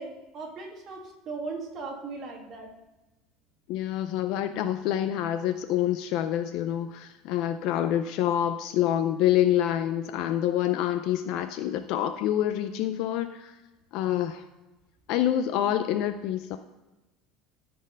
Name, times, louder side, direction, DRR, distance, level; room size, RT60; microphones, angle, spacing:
voice 1, 0.0-2.7, right 3 dB, 30° right, 1 dB, 1.6 m, -38 dB
voice 2, 3.7-13.6 13.9-14.4 15.1-16.6, left 11 dB, 50° left, 9 dB, 0.4 m, -27 dB
13.0 x 4.4 x 5.2 m, 1.1 s
cardioid pair, 175°, 0 cm